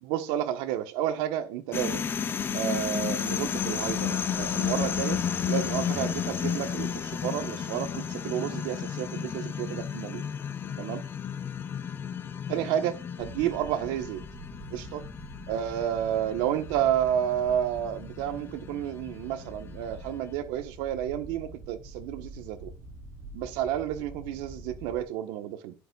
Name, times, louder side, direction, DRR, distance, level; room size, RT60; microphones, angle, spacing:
voice 1, 0.0-2.1 2.5-5.2 5.5-10.2 10.8-11.0 12.5-14.2 14.7-15.0 15.5-22.7 23.3-25.7, right 10 dB, 85° right, 9 dB, 1.3 m, -31 dB
sound 1, 1.7-20.2, left 7 dB, 25° left, 0.7 m, -33 dB
sound 2, 13.2-25.0, right 1 dB, 35° right, 3.7 m, -46 dB
11.5 x 10.0 x 2.5 m, 0.30 s
cardioid pair, 145°, 8 cm